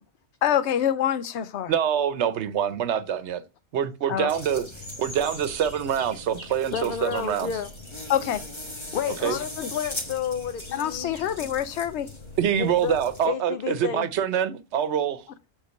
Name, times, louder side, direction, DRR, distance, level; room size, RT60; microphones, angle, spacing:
voice 1, 0.4-1.7 4.1-4.3 8.1-8.4 9.2-9.7 10.7-12.1, left 10 dB, 80° left, 0.9 m, -26 dB
voice 2, 1.7-3.4 3.7-4.7 5.0-7.5 9.2-9.4 12.4-15.2, right 9 dB, 75° right, 1.0 m, -25 dB
sound 1, 4.3-13.3, left 1 dB, 25° left, 1.6 m, -39 dB
voice 3, 6.7-7.7 8.9-11.1 12.5-13.0 13.2-14.1, left 7 dB, 60° left, 0.7 m, -30 dB
8.1 x 3.7 x 6.3 m
omnidirectional pair, 1.2 m